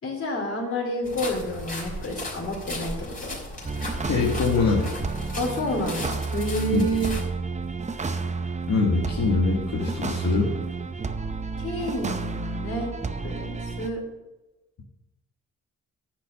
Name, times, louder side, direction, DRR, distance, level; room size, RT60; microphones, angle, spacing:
voice 1, 0.0-3.4 5.3-7.1 11.6-12.9 13.2-14.0, equal, 45° left, 0 dB, 3.6 m, -29 dB
sound 1, 1.0-7.2, left 1 dB, 25° left, 3.5 m, -36 dB
sound 2, 3.6-13.9, right 4 dB, 25° right, 0.7 m, -31 dB
voice 2, 4.1-4.9 6.7-6.9 8.7-10.5, left 4 dB, 65° left, -2 dB, 1.7 m, -23 dB
10.0 x 6.4 x 7.7 m, 1.1 s
cardioid pair, 115°, 30 cm